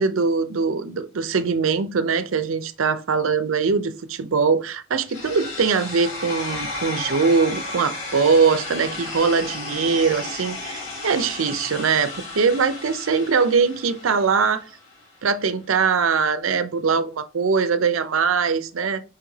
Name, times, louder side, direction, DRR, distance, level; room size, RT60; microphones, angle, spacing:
voice 1, 0.0-14.6 15.2-19.0, right 5 dB, 90° right, 0.6 m, -22 dB
sound 1, 5.1-15.1, left 2 dB, 75° left, 1.7 m, -34 dB
4.6 x 3.2 x 3.5 m
head